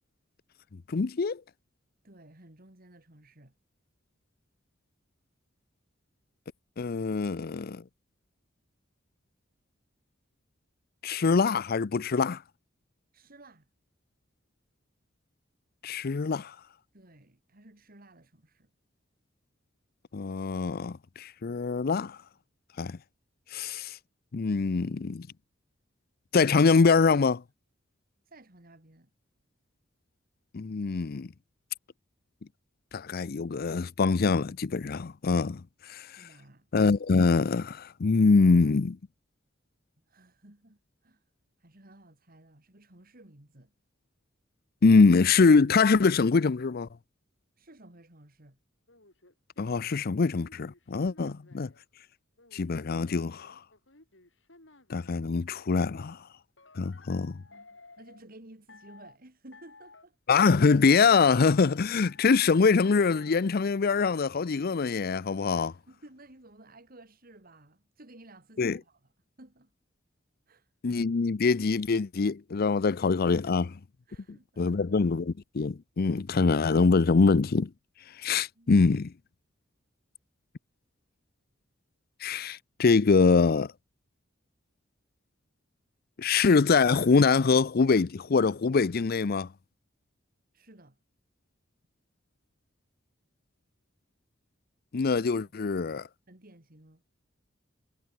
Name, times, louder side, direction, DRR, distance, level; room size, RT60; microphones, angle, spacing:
voice 1, 0.9-1.4 6.8-7.8 11.0-12.4 15.8-16.5 20.1-22.2 22.8-23.0 23.5-24.0 24.3-25.3 26.3-27.4 30.5-31.3 32.9-36.2 36.7-39.0 44.8-46.9 49.6-51.7 52.5-53.6 54.9-56.2 56.8-57.4 60.3-65.7 68.6-68.8 70.8-73.8 74.3-77.7 78.2-79.1 82.2-83.7 86.2-89.5 94.9-96.1, left 4 dB, 50° left, 0.5 m, -24 dB
voice 2, 2.0-3.5 13.1-13.6 16.9-18.7 28.3-29.1 36.2-36.7 40.1-41.2 41.6-43.7 47.6-48.6 51.0-51.4 57.1-60.2 65.6-69.0 69.4-69.7 70.5-70.7 74.1-75.1 78.5-78.9 86.2-86.3 90.5-91.0 96.3-97.0, right 1 dB, 50° right, 3.3 m, -54 dB
sound 1, 48.9-51.8 52.4-55.3 56.6-58.2 58.7-59.2 59.5-60.0 60.3-60.8 61.2-61.7 62.0-62.5 62.8-63.4, left 3 dB, 70° left, 6.9 m, -55 dB
head